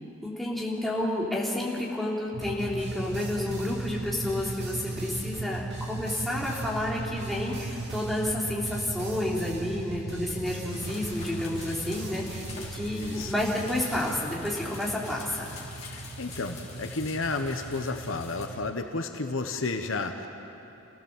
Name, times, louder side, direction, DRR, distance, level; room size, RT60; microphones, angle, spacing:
voice 1, 0.2-12.4 12.7-15.5, left 1 dB, ahead, -5 dB, 3.1 m, -30 dB
sound 1, 2.3-18.7, right 3 dB, 80° right, 0.9 m, -38 dB
sound 2, 2.4-14.1, right 2 dB, 50° right, 3.0 m, -45 dB
sound 3, 10.7-18.5, left 4 dB, 30° left, 3.4 m, -45 dB
voice 2, 13.0-13.3 15.8-20.3, left 3 dB, 70° left, 5 dB, 1.2 m, -32 dB
28.5 x 16.5 x 7.4 m, 2.9 s
head